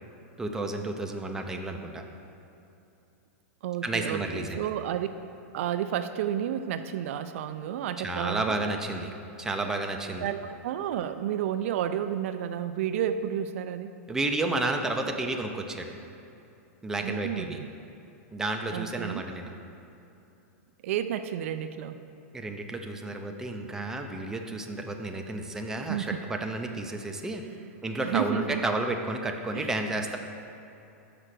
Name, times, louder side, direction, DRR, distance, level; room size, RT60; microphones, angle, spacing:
voice 1, 0.4-2.0 3.8-4.6 8.0-9.1 9.4-10.3 14.1-15.9 16.8-17.6 18.3-19.5 22.3-27.4 27.8-30.2, right 2 dB, 5° right, 3 dB, 0.5 m, -31 dB
voice 2, 3.6-5.1 5.5-8.6 10.2-13.9 17.0-17.7 18.7-19.2 20.8-22.0 25.8-26.2 27.6-27.7 28.0-28.6 29.5-29.7, right 10 dB, 65° right, 10 dB, 0.4 m, -31 dB
5.6 x 4.9 x 6.5 m, 2.8 s
supercardioid pair, 140°, 8 cm